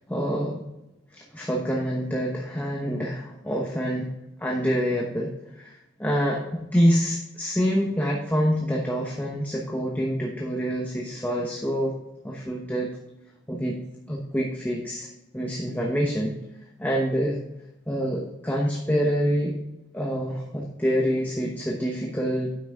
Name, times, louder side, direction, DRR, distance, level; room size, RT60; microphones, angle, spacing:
voice 1, 0.1-0.6 1.1-4.1 4.4-11.9 12.2-12.9 13.5-13.8 14.1-15.1 15.3-16.3 16.8-17.4 17.9-19.6 19.9-22.6, equal, 10° left, -1 dB, 0.9 m, -26 dB
9.1 x 5.9 x 3.6 m, 0.93 s
head